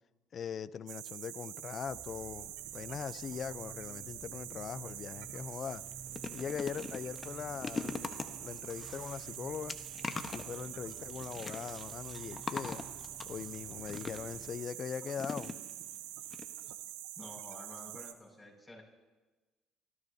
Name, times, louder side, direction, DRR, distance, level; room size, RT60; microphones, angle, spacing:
voice 1, 0.3-5.8 6.3-8.0 8.4-9.8 10.3-12.9 13.3-15.5, left 7 dB, 50° left, 17 dB, 0.5 m, -41 dB
sound 1, 0.9-18.1, right 13 dB, 85° right, 0.7 m, -45 dB
sound 2, 1.8-14.5, right 3 dB, 30° right, 3.5 m, -54 dB
sound 3, 5.1-5.3 5.7-14.5 15.2-16.0 16.3-16.4 16.7-16.8, left 4 dB, 30° left, 1.1 m, -42 dB
voice 2, 17.2-18.8, left 1 dB, 10° left, -1 dB, 6.1 m, -50 dB
28.0 x 14.0 x 2.8 m, 1.2 s
supercardioid pair, 70°, 0 cm